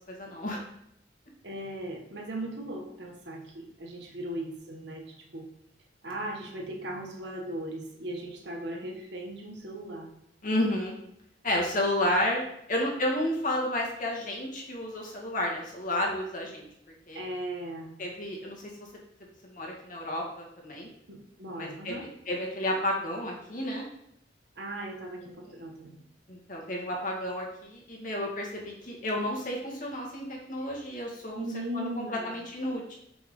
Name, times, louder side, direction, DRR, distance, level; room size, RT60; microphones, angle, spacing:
voice 1, 0.1-0.6 10.4-10.9 11.4-12.4 12.7-16.7 17.1-17.2 18.0-18.6 19.4-20.9 21.6-21.9 22.3-23.9 26.3-31.4 31.7-33.0, left 1 dB, 50° left, -1 dB, 2.1 m, -31 dB
voice 2, 1.4-5.5 6.0-10.1 17.1-17.9 21.1-22.1 24.5-26.0 30.6-30.7 31.3-32.5, right 1 dB, 75° right, 1 dB, 1.7 m, -38 dB
6.1 x 5.9 x 5.5 m, 0.75 s
head